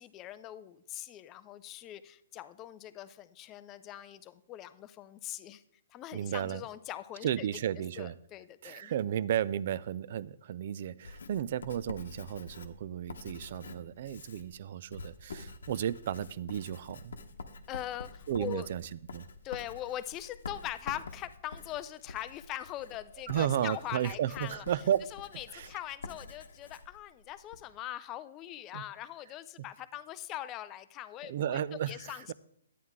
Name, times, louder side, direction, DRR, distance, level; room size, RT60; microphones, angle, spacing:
voice 1, 0.0-5.6 5.9-7.5 7.8-8.9 17.7-18.7 19.4-24.6 25.1-31.6 31.9-32.3, left 13 dB, 20° left, 14 dB, 0.4 m, -42 dB
voice 2, 6.1-6.6 7.2-8.1 8.6-17.2 18.3-18.8 19.1-19.3 23.3-25.0 25.5-25.7 28.7-28.8 31.3-32.3, right 10 dB, 45° right, 19 dB, 0.4 m, -33 dB
Writing, 11.0-27.7, left 3 dB, 80° left, 1.0 m, -47 dB
11.5 x 9.3 x 3.6 m, 0.72 s
hypercardioid pair, 165°, 0 cm